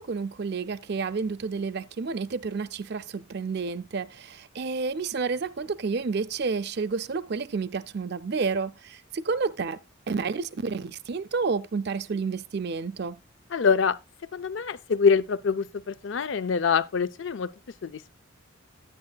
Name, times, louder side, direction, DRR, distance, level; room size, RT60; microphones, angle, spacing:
voice 1, 0.0-9.8 10.1-13.2, right 4 dB, 50° right, 0.4 m, -30 dB
voice 2, 13.5-13.9 14.3-17.5 17.8-17.9, left 5 dB, 60° left, 0.5 m, -24 dB
10.5 x 9.9 x 2.3 m
head